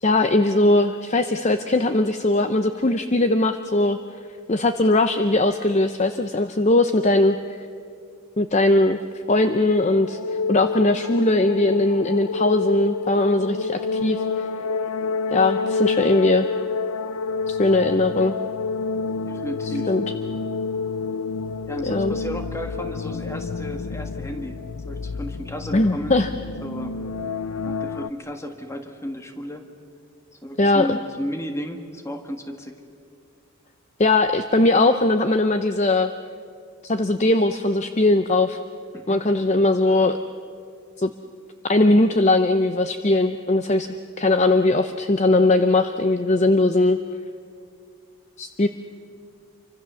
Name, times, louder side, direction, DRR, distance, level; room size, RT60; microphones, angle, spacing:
voice 1, 0.0-4.0 4.5-7.4 8.4-9.0 9.3-10.2 10.5-14.5 15.3-16.5 17.5-18.3 19.9-20.0 21.9-22.1 25.7-26.3 30.6-31.0 34.0-36.1 36.8-38.6 39.1-40.2 41.0-41.1 41.7-43.9 44.2-47.0 48.4-48.7, left 2 dB, 30° left, 9 dB, 0.6 m, -19 dB
sound 1, 9.7-28.1, left 4 dB, 85° left, 0.7 m, -28 dB
voice 2, 19.2-20.0 21.7-24.6 24.9-26.2 26.6-26.9 27.7-29.7 30.3-32.8 38.9-39.3, equal, 10° left, 5 dB, 1.7 m, -33 dB
28.0 x 24.5 x 7.0 m, 2.3 s
head